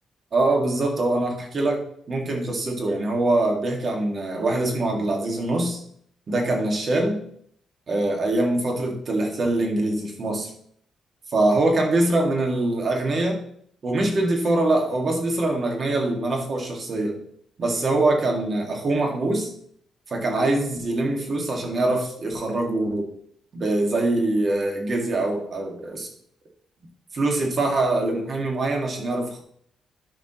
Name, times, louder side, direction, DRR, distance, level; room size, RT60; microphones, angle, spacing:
voice 1, 0.3-5.8 6.3-7.2 7.9-10.5 11.3-13.4 13.8-17.2 17.6-19.5 20.1-23.1 23.5-26.1 27.1-29.4, right 2 dB, 45° right, 1 dB, 2.0 m, -23 dB
12.0 x 5.0 x 3.1 m, 0.66 s
cardioid pair, 120°, 0 cm